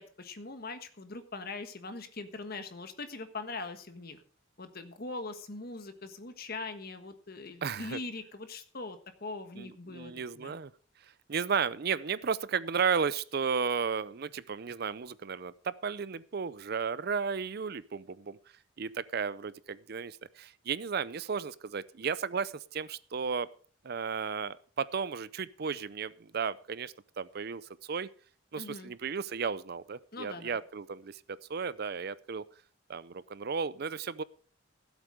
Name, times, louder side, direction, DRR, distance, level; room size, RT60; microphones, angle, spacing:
voice 1, 0.0-4.2 4.6-10.6 28.5-28.9 30.1-30.6, left 3 dB, 50° left, 9 dB, 1.4 m, -42 dB
voice 2, 7.6-8.0 9.6-10.7 11.3-18.4 18.8-23.5 23.8-28.1 28.5-32.4 32.9-34.2, right 6 dB, 50° right, 18 dB, 0.5 m, -34 dB
15.5 x 8.2 x 4.9 m, 0.44 s
head